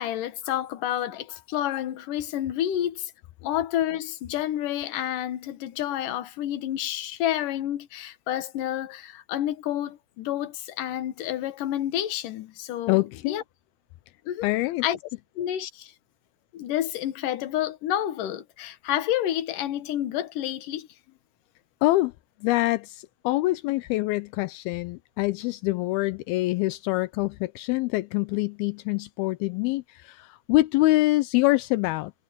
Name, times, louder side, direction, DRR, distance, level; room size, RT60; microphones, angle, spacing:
voice 1, 0.0-3.1 3.4-13.0 13.3-13.4 14.3-14.5 14.8-15.0 15.4-15.9 16.5-20.9, left 12 dB, 65° left, 2.8 m, -29 dB
voice 2, 12.9-13.4 14.4-14.8 21.8-22.1 22.4-32.1, left 19 dB, 85° left, 2.5 m, -25 dB
omnidirectional pair, 4.4 m